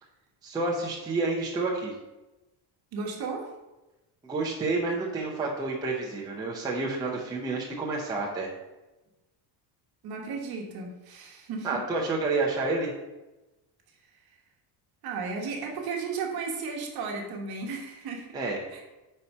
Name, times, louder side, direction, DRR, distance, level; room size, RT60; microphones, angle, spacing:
voice 1, 0.4-1.9 4.2-8.5 11.6-12.9 18.3-18.6, right 3 dB, 10° right, -4 dB, 0.6 m, -29 dB
voice 2, 2.9-3.5 10.0-11.8 15.0-18.4 18.7-18.8, right 4 dB, 50° right, 1 dB, 1.2 m, -34 dB
4.7 x 4.3 x 5.3 m, 1.0 s
cardioid pair, 170°, 49 cm